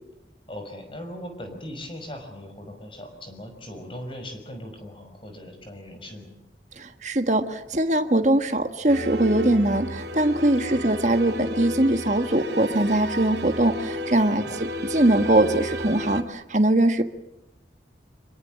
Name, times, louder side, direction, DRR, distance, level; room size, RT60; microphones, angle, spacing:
voice 1, 0.5-6.3 10.7-10.8 14.4-14.6, left 1 dB, 30° left, 6 dB, 5.6 m, -39 dB
voice 2, 6.8-17.0, right 1 dB, 40° right, 7 dB, 1.5 m, -22 dB
sound 1, 8.9-16.2, equal, 75° right, 2.7 m, -32 dB
26.0 x 22.5 x 7.6 m, 0.87 s
head